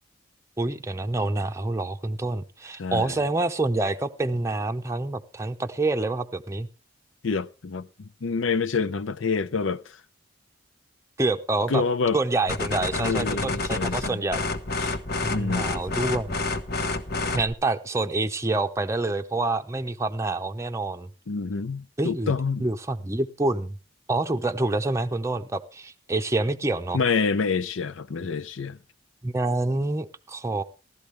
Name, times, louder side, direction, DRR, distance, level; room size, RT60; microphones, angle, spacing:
voice 1, 0.6-6.7 11.2-11.8 12.1-14.4 15.2-16.4 17.3-21.1 22.0-22.3 22.6-23.7 24.1-27.0 29.2-30.6, right 2 dB, 15° right, 0.7 m, -27 dB
voice 2, 7.2-7.9 8.2-9.9 11.7-12.2 13.0-14.2 14.8-15.0 15.3-15.8 21.3-22.7 26.9-28.8, left 4 dB, 75° left, 0.6 m, -27 dB
sound 1, 12.5-17.5, left 3 dB, 50° left, 1.1 m, -29 dB
16.0 x 12.5 x 3.3 m
head